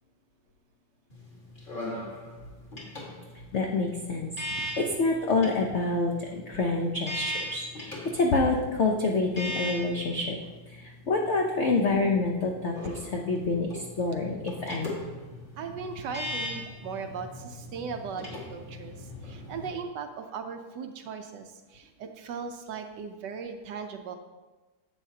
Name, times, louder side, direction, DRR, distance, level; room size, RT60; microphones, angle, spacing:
sound 1, 1.1-19.7, left 1 dB, 25° left, 1.7 m, -40 dB
voice 1, 3.5-10.4 10.7-15.0, left 3 dB, 70° left, 1 dB, 0.6 m, -27 dB
voice 2, 15.6-24.2, right 6 dB, 70° right, 6 dB, 1.1 m, -38 dB
10.5 x 7.5 x 2.8 m, 1.2 s
omnidirectional pair, 2.2 m